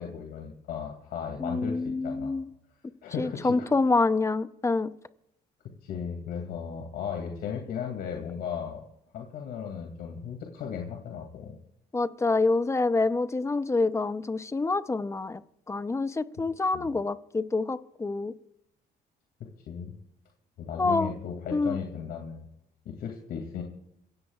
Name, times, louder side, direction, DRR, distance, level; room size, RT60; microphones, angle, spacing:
voice 1, 0.0-2.4 3.0-3.7 5.8-8.8 9.1-11.6 16.7-16.9 19.7-19.9 20.6-22.5 22.8-23.6, left 7 dB, 70° left, 2 dB, 2.5 m, -36 dB
voice 2, 1.4-2.5 3.2-4.9 11.9-15.4 15.7-18.3 20.8-21.1 21.5-21.8, left 3 dB, 15° left, 13 dB, 0.7 m, -27 dB
27.0 x 16.0 x 2.4 m, 0.78 s
cardioid pair, 110°, 17 cm